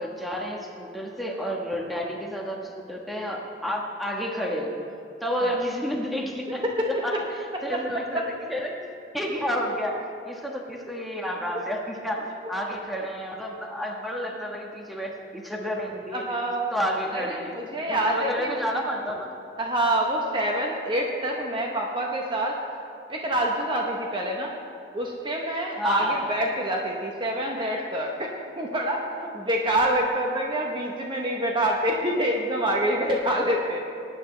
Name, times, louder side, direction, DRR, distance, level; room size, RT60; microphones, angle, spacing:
voice 1, 0.0-4.7 5.2-6.6 7.0-7.1 7.6-8.2 8.5-8.7 9.1-10.0 10.2-16.2 16.7-17.5 17.9-19.4 25.8-26.3, equal, ahead, -1 dB, 1.3 m, -30 dB
voice 2, 16.1-16.7 17.1-18.6 19.6-22.6 23.1-24.6 24.9-33.8, right 1 dB, 25° right, -1 dB, 0.9 m, -26 dB
20.0 x 9.3 x 3.3 m, 2.5 s
head